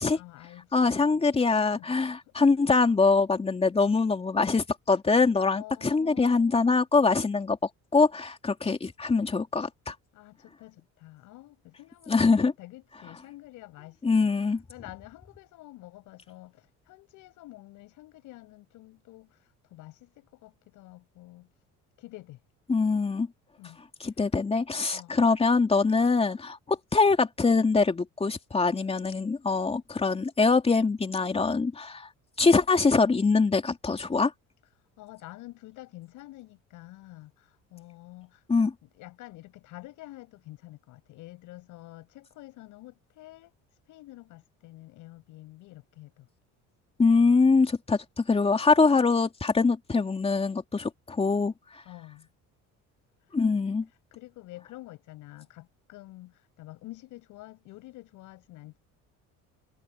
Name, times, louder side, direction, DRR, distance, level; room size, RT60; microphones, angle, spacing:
voice 1, 0.0-1.2 1.6-1.9 2.3-2.5 5.5-6.6 10.1-14.0 14.3-21.5 22.0-22.4 23.6-23.8 24.9-25.3 35.0-38.4 38.8-43.5 43.9-46.3 51.8-52.3 54.1-58.8, left 18 dB, 80° left, 7.9 m, -48 dB
voice 2, 0.7-7.6 7.9-9.9 12.1-12.5 14.0-14.6 22.7-23.3 24.0-32.1 32.4-34.3 38.5-38.7 47.0-51.5 53.3-53.9, left 4 dB, 20° left, 3.0 m, -23 dB
cardioid pair, 125°, 30 cm